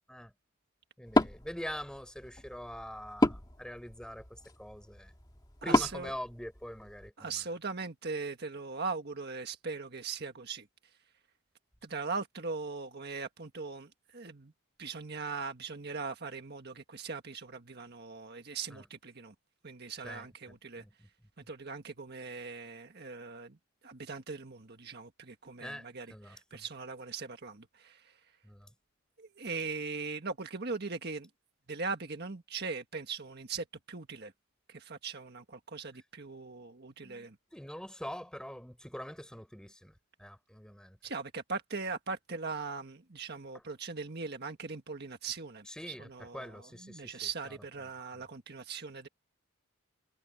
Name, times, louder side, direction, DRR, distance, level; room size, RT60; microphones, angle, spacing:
Wood, 1.0-7.1, left 1 dB, 20° left, 2.0 m, -33 dB
voice 1, 1.0-5.1 5.6-7.4 18.7-18.8 20.0-21.1 25.6-26.7 28.4-28.7 37.0-41.0 45.7-46.1 46.3-47.6 47.8-48.2, equal, 5° left, 4.2 m, -44 dB
voice 2, 5.6-6.1 7.2-10.7 11.8-14.5 14.8-19.3 19.6-20.8 21.5-23.6 23.8-28.2 29.2-31.3 31.7-34.3 34.7-37.4 41.0-49.1, right 4 dB, 50° right, 1.6 m, -40 dB
head